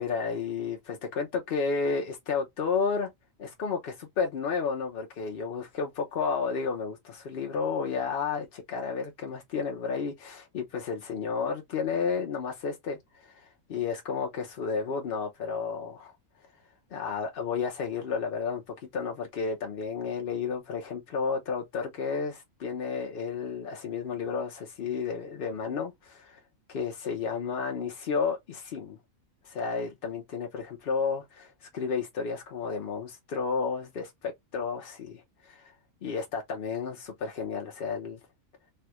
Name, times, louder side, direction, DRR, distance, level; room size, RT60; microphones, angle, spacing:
voice 1, 0.0-3.1 3.4-16.1 16.9-26.4 26.7-29.0 29.4-35.7 36.0-38.2, left 5 dB, 55° left, 0.7 m, -32 dB
3.4 x 2.3 x 2.9 m
omnidirectional pair, 1.4 m